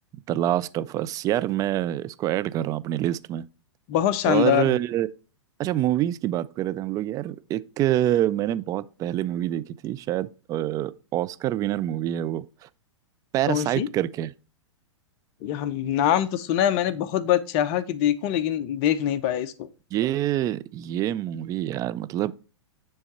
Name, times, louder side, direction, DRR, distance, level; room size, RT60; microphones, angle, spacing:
voice 1, 0.3-3.5 4.3-5.1 5.6-12.4 13.3-14.3 19.9-22.3, right 13 dB, 20° right, 0.3 m, -26 dB
voice 2, 3.9-4.8 13.5-13.9 15.4-19.7, left 11 dB, 40° left, 0.7 m, -24 dB
9.6 x 3.4 x 4.1 m
figure-of-eight pair, 110°, 16 cm